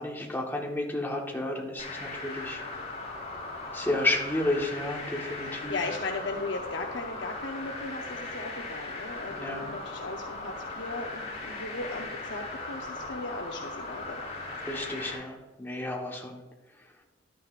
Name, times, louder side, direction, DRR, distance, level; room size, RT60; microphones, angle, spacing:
voice 1, 0.0-2.6 3.7-5.8 9.3-9.7 14.6-16.4, left 1 dB, 10° left, -1 dB, 1.2 m, -31 dB
sound 1, 1.8-15.1, left 2 dB, 35° left, 3.4 m, -38 dB
voice 2, 5.5-14.2, left 3 dB, 75° left, 1 dB, 0.8 m, -37 dB
11.5 x 9.3 x 2.5 m, 1.1 s
head